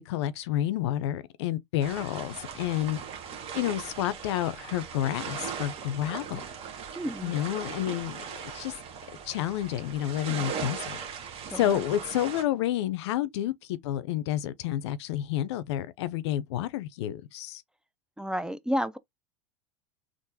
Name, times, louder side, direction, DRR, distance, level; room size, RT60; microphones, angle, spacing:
voice 1, 0.0-3.0 3.5-6.4 7.2-8.7 9.3-11.0 11.5-17.6, left 12 dB, 75° left, 0.5 m, -30 dB
sound 1, 1.8-12.4, right 7 dB, 40° right, 1.1 m, -39 dB
voice 2, 6.9-7.3 11.5-11.8 18.2-19.0, equal, 5° right, 0.3 m, -31 dB
3.7 x 2.5 x 2.7 m
hypercardioid pair, 100°, 14 cm